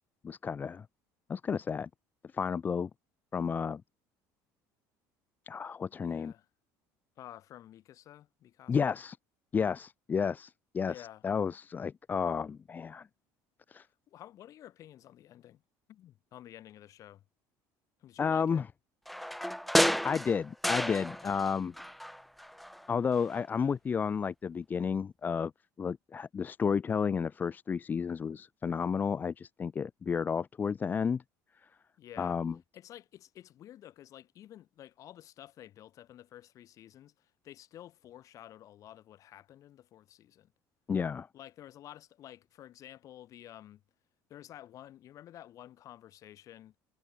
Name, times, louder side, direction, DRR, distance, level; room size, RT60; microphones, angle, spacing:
voice 1, 0.2-0.9 1.3-1.9 2.3-2.9 3.3-3.8 5.5-6.3 8.7-9.2 9.5-10.9 11.2-13.1 13.7-13.9 18.2-18.6 20.0-21.7 22.9-25.5 25.8-31.2 32.2-32.5 40.9-41.3, left 6 dB, 25° left, 0.9 m, -31 dB
voice 2, 5.8-6.5 7.2-9.0 10.8-11.2 13.8-15.6 15.9-17.2 18.0-18.6 23.4-23.8 32.0-32.4 32.7-40.5 41.3-43.8 44.3-46.8, left 12 dB, 45° left, 6.7 m, -51 dB
sound 1, 19.1-21.5 21.8-22.8 23.2-23.3, equal, ahead, 0.3 m, -31 dB
cardioid pair, 145°, 8 cm